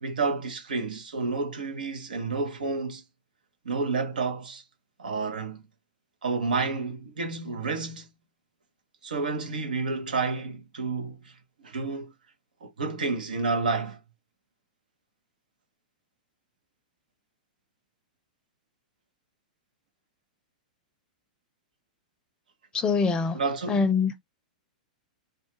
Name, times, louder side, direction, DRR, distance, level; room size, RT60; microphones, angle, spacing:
voice 1, 0.0-3.0 3.6-4.6 5.0-5.6 6.2-8.1 9.0-11.3 11.6-12.1 12.6-14.0 23.3-23.9, right 4 dB, 90° right, 0.8 m, -30 dB
voice 2, 22.7-23.4 23.7-24.1, left 5 dB, 20° left, 0.5 m, -24 dB
2.3 x 2.3 x 2.8 m
hypercardioid pair, 120°, 4 cm